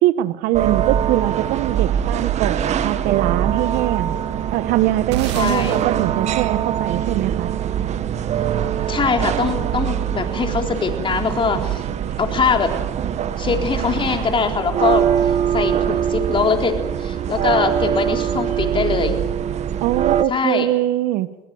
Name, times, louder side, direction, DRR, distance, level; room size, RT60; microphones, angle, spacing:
voice 1, 0.0-4.2 4.5-7.5 19.8-21.3, right 15 dB, 75° right, 14 dB, 1.3 m, -22 dB
sound 1, 0.5-20.2, right 9 dB, 50° right, 1.7 m, -23 dB
sound 2, 5.1-9.6, right 11 dB, 90° right, 1.6 m, -31 dB
voice 2, 5.3-5.8 8.9-11.8 12.2-12.7 13.4-19.2 20.3-20.7, left 5 dB, 35° left, 4 dB, 4.1 m, -22 dB
21.5 x 21.0 x 8.0 m, 1.0 s
supercardioid pair, 75°, 15 cm